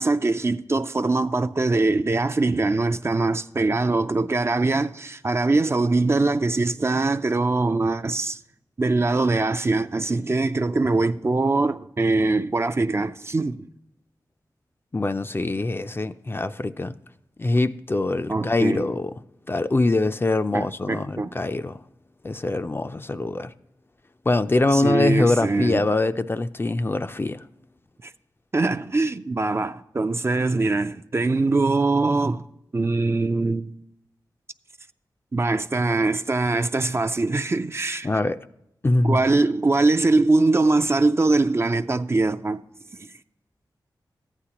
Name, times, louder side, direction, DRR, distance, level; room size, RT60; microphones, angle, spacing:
voice 1, 0.0-8.4 8.8-13.7 18.3-18.9 20.5-21.3 24.7-25.9 28.0-28.1 28.5-32.4 32.7-33.8 35.3-38.1 39.0-42.6 43.0-43.1, right 3 dB, 35° right, 0.4 m, -22 dB
voice 2, 14.9-17.0 17.4-19.1 19.5-21.8 22.2-23.5 24.3-27.4 38.0-38.4 38.8-39.2, left 2 dB, 30° left, 0.4 m, -23 dB
14.0 x 9.8 x 2.9 m
cardioid pair, 65°, 8 cm